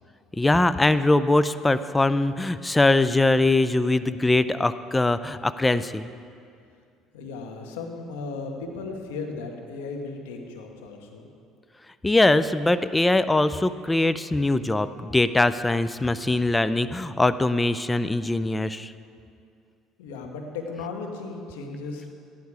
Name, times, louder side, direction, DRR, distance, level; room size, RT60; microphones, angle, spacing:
voice 1, 0.4-6.1 12.0-18.9, left 2 dB, 15° left, 13 dB, 0.4 m, -22 dB
voice 2, 7.1-11.3 20.0-22.1, left 4 dB, 90° left, 2 dB, 1.6 m, -36 dB
14.0 x 10.5 x 4.9 m, 2.4 s
supercardioid pair, 85°, 0 cm